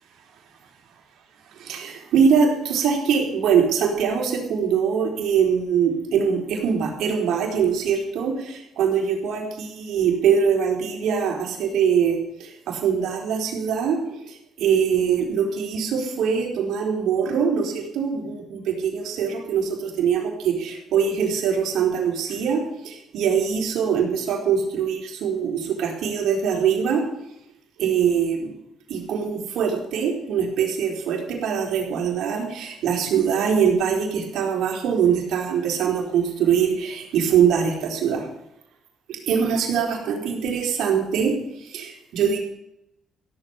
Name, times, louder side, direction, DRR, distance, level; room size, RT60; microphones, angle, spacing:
voice 1, 1.6-14.0 14.3-27.0 27.8-28.5 28.9-38.3 39.1-41.3 41.7-42.4, right 7 dB, 80° right, 1 dB, 4.4 m, -23 dB
16.5 x 7.5 x 8.3 m, 0.82 s
cardioid pair, 90°, 0 cm